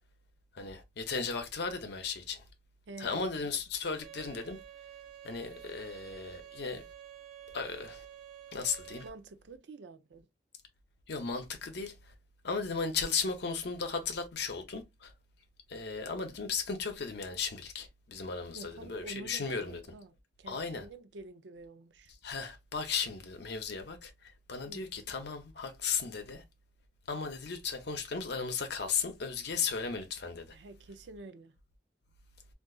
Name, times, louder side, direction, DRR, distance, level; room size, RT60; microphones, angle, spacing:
voice 1, 0.5-2.4 3.0-4.6 5.2-6.8 7.5-8.0 8.5-9.0 11.1-11.9 12.4-15.1 15.7-19.8 20.5-20.9 22.2-24.1 24.5-26.4 27.1-30.5, left 5 dB, 70° left, 0.7 m, -35 dB
voice 2, 2.9-3.5 9.0-10.3 18.5-22.1 24.6-24.8 30.5-31.6, right 2 dB, 80° right, 0.5 m, -48 dB
Bowed string instrument, 4.0-9.1, right 10 dB, 60° right, 1.1 m, -50 dB
3.7 x 2.5 x 2.3 m
head